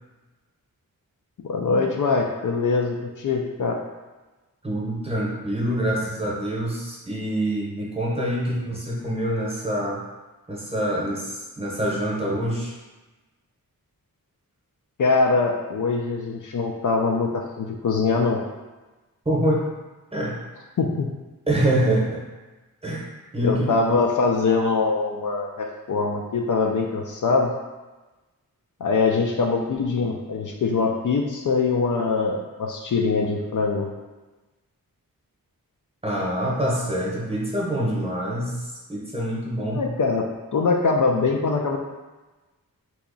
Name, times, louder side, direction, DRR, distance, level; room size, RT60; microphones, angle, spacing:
voice 1, 1.4-3.8 15.0-18.4 20.8-21.1 23.4-27.5 28.8-33.9 39.7-40.3 40.5-41.8, left 4 dB, 60° left, 1 dB, 0.4 m, -23 dB
voice 2, 4.6-10.0 10.5-12.7 19.2-19.6 20.1-20.4 21.5-22.2 22.8-23.1 23.3-23.8 36.0-39.8, right 1 dB, 15° right, -4 dB, 0.9 m, -25 dB
2.9 x 2.3 x 3.8 m, 1.2 s
wide cardioid pair, 70°, 36 cm